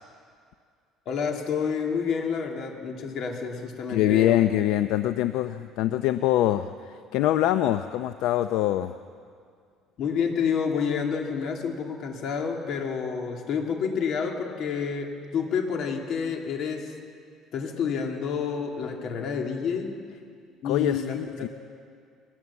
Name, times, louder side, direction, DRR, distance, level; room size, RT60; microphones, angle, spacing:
voice 1, 1.1-4.4 10.0-16.9 17.5-19.9 20.6-21.5, left 6 dB, 55° left, 2 dB, 2.7 m, -29 dB
voice 2, 3.9-9.0 20.6-21.5, left 13 dB, 75° left, 10 dB, 0.6 m, -24 dB
22.0 x 18.5 x 7.1 m, 2.2 s
cardioid pair, 150°, 0 cm